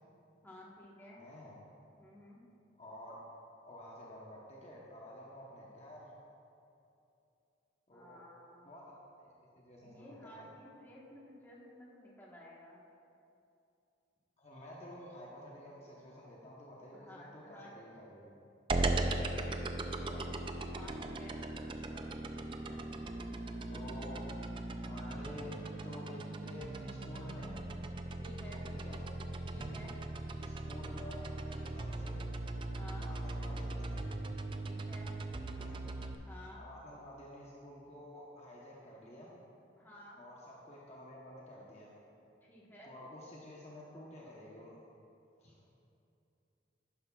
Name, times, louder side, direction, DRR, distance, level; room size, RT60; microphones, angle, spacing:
voice 1, 0.4-1.2 2.0-2.4 7.9-8.7 9.8-12.8 16.9-17.7 18.8-20.1 20.8-21.4 28.2-28.7 29.5-29.9 32.7-33.1 34.6-35.1 36.3-36.6 39.8-40.2 42.4-42.9, equal, 10° left, -5 dB, 1.3 m, -54 dB
voice 2, 1.2-1.6 2.8-3.2 3.7-6.1 7.9-8.2 8.6-8.8 9.2-10.5 14.4-18.4 19.9-20.3 21.6-22.9 23.4-24.2 24.8-27.7 28.7-29.1 30.4-32.3 33.0-34.2 35.4-35.8 36.6-39.3 40.2-41.9 42.8-44.8 45.4-45.6, left 1 dB, 35° left, -4 dB, 0.9 m, -51 dB
sound 1, 18.7-36.1, right 2 dB, 25° right, 0.4 m, -39 dB
11.5 x 9.7 x 2.4 m, 2.7 s
head